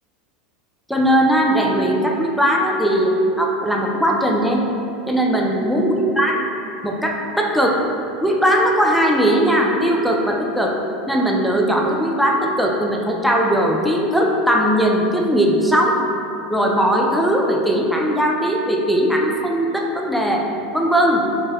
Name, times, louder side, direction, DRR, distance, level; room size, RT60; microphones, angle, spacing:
voice 1, 0.9-4.6 5.1-6.4 6.8-7.8 8.2-10.7 11.1-16.0 16.5-20.5 20.7-21.2, equal, ahead, -1 dB, 0.3 m, -18 dB
2.7 x 2.0 x 3.4 m, 2.6 s
hypercardioid pair, 105°, 4 cm